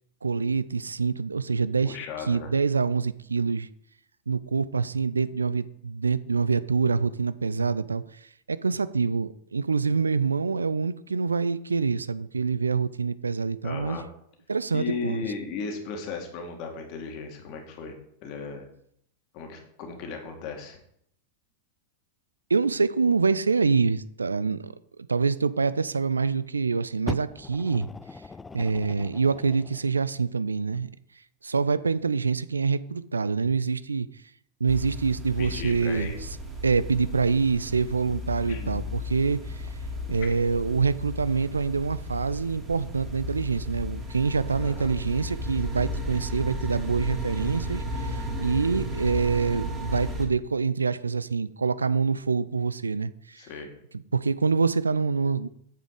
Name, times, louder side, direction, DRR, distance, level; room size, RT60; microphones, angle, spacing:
voice 1, 0.2-2.0 2.3-3.7 4.3-8.0 8.5-14.0 14.5-15.2 22.5-24.7 25.1-27.9 28.5-30.9 31.4-34.1 34.6-36.1 36.6-39.7 40.1-53.5 54.1-55.5, right 4 dB, 75° right, 16 dB, 0.4 m, -26 dB
voice 2, 1.8-2.5 13.6-14.0 14.7-18.0 18.2-18.7 19.3-20.8 35.4-36.2 38.5-38.8 44.6-44.9 53.4-53.7, left 4 dB, 40° left, 4 dB, 2.2 m, -36 dB
Fire, 27.1-29.9 30.7-30.8, left 4 dB, 10° left, 0.4 m, -39 dB
sound 1, 34.7-50.3, equal, 15° right, 2.2 m, -34 dB
8.9 x 7.2 x 4.9 m, 0.70 s
figure-of-eight pair, 90°, 0 cm